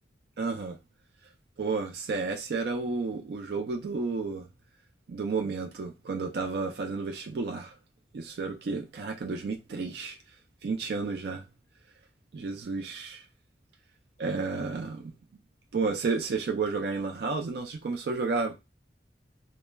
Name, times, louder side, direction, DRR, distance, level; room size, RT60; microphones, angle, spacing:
voice 1, 0.4-0.8 1.6-4.5 5.1-7.7 8.1-10.2 10.6-11.4 12.3-13.2 14.2-15.0 15.7-18.6, right 4 dB, 65° right, 0.4 m, -31 dB
2.2 x 2.0 x 3.2 m
head